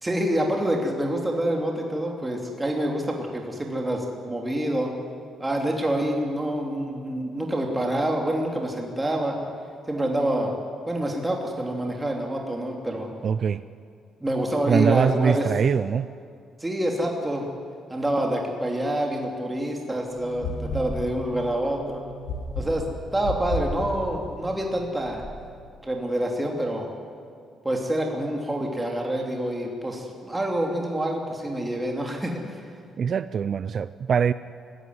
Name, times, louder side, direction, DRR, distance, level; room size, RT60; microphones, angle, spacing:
voice 1, 0.0-4.9 5.4-9.4 9.9-10.5 10.9-13.1 14.2-15.5 16.6-17.5 17.9-22.0 22.6-25.2 25.8-26.9 27.6-32.6, right 1 dB, 15° right, 0 dB, 3.1 m, -27 dB
voice 2, 13.2-13.6 14.7-16.1 33.0-34.3, right 7 dB, 55° right, 14 dB, 0.5 m, -23 dB
sound 1, 20.1-25.5, left 1 dB, 85° left, 6.8 m, -34 dB
24.5 x 15.5 x 9.7 m, 2.3 s
cardioid pair, 90°, 0 cm